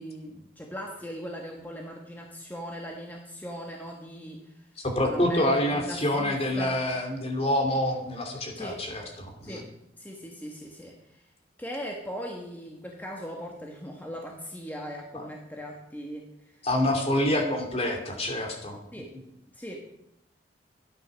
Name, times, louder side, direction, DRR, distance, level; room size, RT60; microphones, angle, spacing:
voice 1, 0.0-4.7 5.0-6.8 8.6-8.8 9.4-9.7 10.0-11.2 11.6-16.7 18.9-19.1 19.5-19.8, equal, 10° left, 0 dB, 1.4 m, -39 dB
voice 2, 4.8-9.6 15.1-15.3 16.6-18.8, left 1 dB, 35° left, 3 dB, 2.8 m, -27 dB
13.0 x 10.5 x 6.3 m, 0.82 s
head